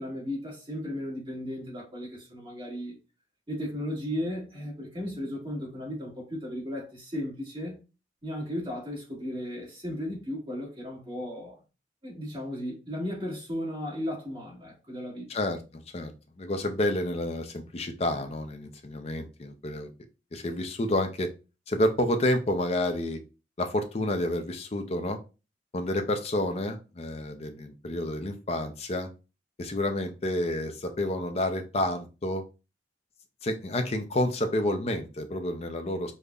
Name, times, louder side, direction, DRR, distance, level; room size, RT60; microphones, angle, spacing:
voice 1, 0.0-2.9 3.5-7.8 8.2-11.6 12.0-15.3, equal, 30° right, 1.5 m, -35 dB
voice 2, 15.3-16.1 16.4-19.9 20.3-21.3 21.7-23.2 23.6-25.2 25.7-29.1 29.6-32.4 33.4-36.1, left 1 dB, 35° left, 0.5 m, -29 dB
5.1 x 2.1 x 2.3 m
head